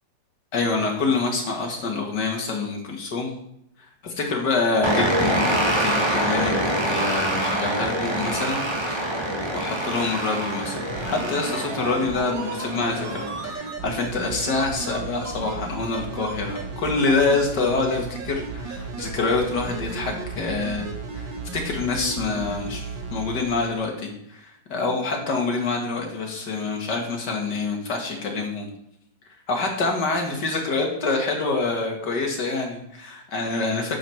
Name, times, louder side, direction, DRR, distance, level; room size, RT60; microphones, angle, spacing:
voice 1, 0.5-3.3 4.0-8.6 8.9-9.2 9.5-20.9 21.1-28.7 29.5-34.0, left 3 dB, 65° left, 2 dB, 2.4 m, -26 dB
sound 1, 4.8-13.5, right 1 dB, 15° right, 1.4 m, -25 dB
sound 2, 10.9-23.4 23.7-23.8, right 4 dB, 80° right, 2.1 m, -34 dB
10.0 x 7.1 x 4.5 m, 0.77 s
omnidirectional pair, 2.0 m